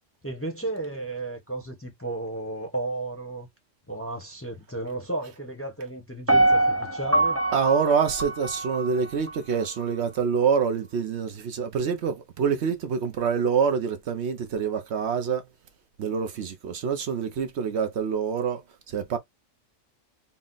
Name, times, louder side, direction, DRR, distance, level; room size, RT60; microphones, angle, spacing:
voice 1, 0.2-3.5 3.9-7.4, right 2 dB, 15° left, 0.7 m, -33 dB
Piano, 6.3-9.4 9.8-9.9, right 2 dB, 20° right, 0.5 m, -24 dB
voice 2, 7.5-15.4 16.0-18.6 18.9-19.2, right 6 dB, 65° right, 0.9 m, -26 dB
4.1 x 2.1 x 3.8 m
omnidirectional pair, 1.3 m